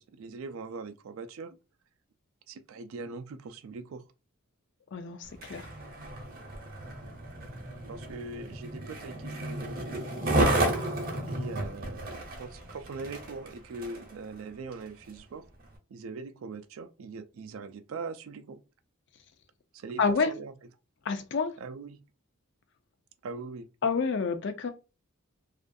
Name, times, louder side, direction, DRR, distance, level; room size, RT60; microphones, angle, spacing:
voice 1, 0.0-1.6 2.5-4.0 7.9-10.0 11.3-15.4 15.9-18.6 19.7-20.5 21.6-22.0 23.2-23.7, right 4 dB, 65° right, 0.3 m, -41 dB
voice 2, 4.9-5.7 20.0-20.3 21.1-21.5 23.8-24.7, left 5 dB, 50° left, 0.4 m, -28 dB
Skateboard, 5.3-14.1 14.7-14.8, right 1 dB, 40° right, 0.7 m, -32 dB
2.4 x 2.2 x 2.5 m
head